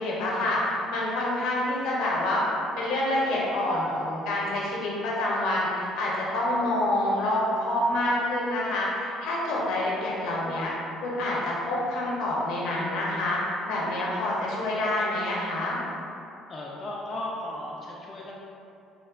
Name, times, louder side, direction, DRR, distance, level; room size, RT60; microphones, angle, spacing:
voice 1, 0.0-2.4 2.8-10.7 11.0-15.8, left 1 dB, 75° left, -5 dB, 0.6 m, -27 dB
voice 2, 16.5-18.3, left 1 dB, 35° left, -4 dB, 0.3 m, -35 dB
3.1 x 2.0 x 2.3 m, 2.6 s
cardioid pair, 95°, 0 cm